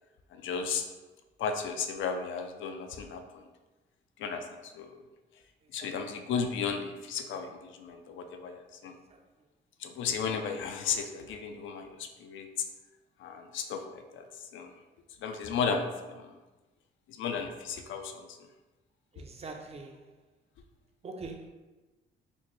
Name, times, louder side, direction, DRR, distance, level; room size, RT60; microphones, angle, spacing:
voice 1, 0.3-0.9 1.4-3.4 4.2-5.0 5.7-8.9 9.8-12.5 13.2-14.7 15.2-16.2 17.1-18.3, left 6 dB, 75° left, 6 dB, 0.4 m, -34 dB
voice 2, 8.8-9.2 19.1-20.0 21.0-21.5, right 3 dB, 30° right, 3 dB, 0.5 m, -43 dB
4.1 x 2.1 x 3.0 m, 1.2 s
cardioid pair, 90°, 20 cm